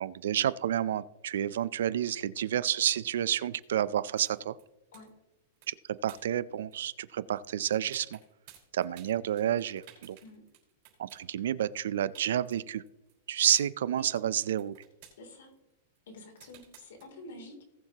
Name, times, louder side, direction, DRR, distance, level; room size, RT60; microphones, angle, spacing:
voice 1, 0.0-4.6 5.7-5.8 6.0-8.2 8.7-10.2 11.0-12.8 13.3-14.7, right 10 dB, 70° right, 18 dB, 0.4 m, -30 dB
sound 1, 3.2-7.0 7.3-7.5 7.7-11.3 11.7-11.8 12.0-13.2 13.5-13.7 14.0-17.0, right 11 dB, 35° right, 4.5 m, -57 dB
voice 2, 15.2-15.5 16.1-17.6, left 2 dB, 70° left, 3 dB, 3.0 m, -48 dB
19.0 x 7.2 x 2.9 m, 0.98 s
supercardioid pair, 180°, 0 cm